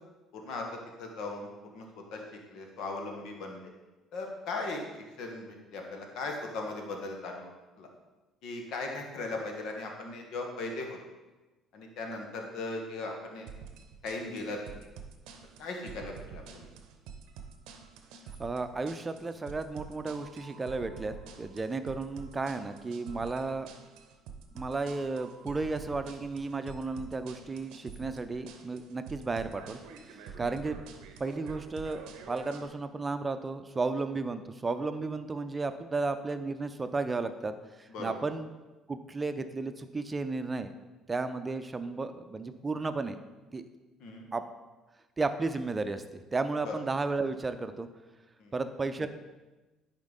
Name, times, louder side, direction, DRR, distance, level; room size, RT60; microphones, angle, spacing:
voice 1, 0.3-0.6 1.0-1.8 2.1-2.2 2.5-3.6 4.1-4.8 5.2-7.5 7.8-7.9 8.4-11.0 11.7-13.5 14.0-14.6 15.6-16.6 30.4-30.5 37.9-38.1 44.0-44.3 46.6-46.7 48.4-48.5, left 3 dB, 65° left, 2 dB, 1.4 m, -38 dB
sound 1, 13.5-32.7, right 6 dB, 70° right, 0.7 m, -47 dB
voice 2, 18.4-23.7 24.5-29.8 30.1-30.8 31.2-38.5 38.9-40.7 41.1-43.2 43.5-43.6 44.3-44.4 45.2-47.9 48.5-49.1, right 3 dB, 25° right, 10 dB, 0.6 m, -33 dB
10.5 x 4.4 x 4.0 m, 1.1 s
hypercardioid pair, 55°, 0 cm